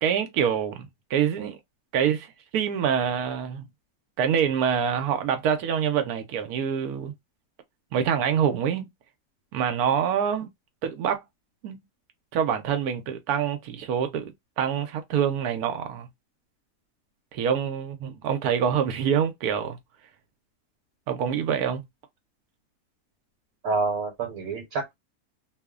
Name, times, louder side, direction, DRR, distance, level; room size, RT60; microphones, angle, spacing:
voice 1, 0.0-1.6 1.9-3.6 4.2-7.1 7.9-8.9 9.5-10.5 10.8-11.2 11.6-11.8 12.3-16.1 17.3-19.8 21.1-21.8, right 8 dB, 90° right, 1.1 m, -26 dB
voice 2, 23.6-24.9, right 3 dB, 75° right, 1.3 m, -28 dB
3.0 x 2.0 x 2.3 m
omnidirectional pair, 1.5 m